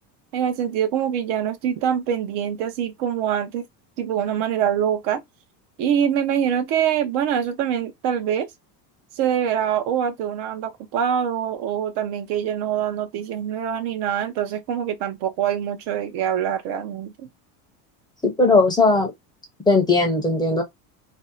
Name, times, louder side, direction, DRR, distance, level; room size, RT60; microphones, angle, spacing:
voice 1, 0.3-3.6 4.0-5.2 5.8-8.5 9.1-17.3, right 9 dB, 65° right, 0.7 m, -24 dB
voice 2, 18.2-19.1 19.7-20.6, left 3 dB, 10° left, 0.5 m, -18 dB
2.7 x 2.0 x 3.8 m
cardioid pair, 155°, 43 cm